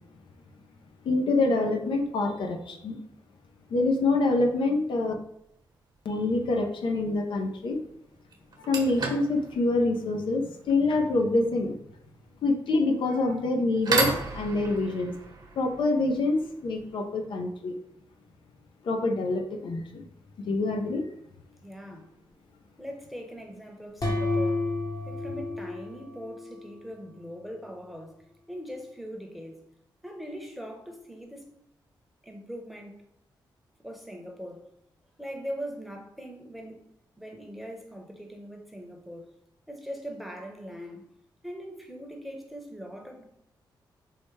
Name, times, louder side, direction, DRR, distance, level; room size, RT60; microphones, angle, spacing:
voice 1, 1.0-3.0 3.7-5.1 6.0-7.8 8.6-11.7 12.4-15.1 15.6-17.7 18.8-20.0 20.5-21.0, left 2 dB, 70° left, 3 dB, 0.5 m, -26 dB
sound 1, 5.4-5.7 7.7-7.8 8.3-17.0, right 3 dB, 50° right, 0.9 m, -35 dB
voice 2, 21.6-22.1 22.8-24.7 25.1-29.6 30.0-31.5 32.2-33.0 33.8-34.6 35.2-36.8 37.2-39.3 39.7-41.1 41.4-43.2, equal, ahead, 2 dB, 0.8 m, -41 dB
sound 2, 24.0-26.8, left 2 dB, 45° left, 1.0 m, -30 dB
4.7 x 2.1 x 3.2 m, 0.74 s
cardioid pair, 65°, 9 cm